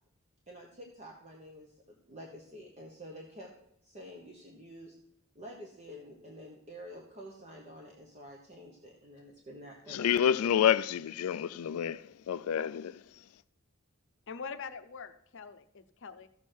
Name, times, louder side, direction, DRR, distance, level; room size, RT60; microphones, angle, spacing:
voice 1, 0.5-3.5 3.8-5.0 5.3-10.3, equal, 30° right, 1.2 m, -49 dB
voice 2, 9.9-12.9, left 9 dB, 90° left, 0.4 m, -28 dB
voice 3, 14.3-16.3, left 5 dB, 60° left, 0.7 m, -43 dB
14.0 x 7.2 x 4.5 m
head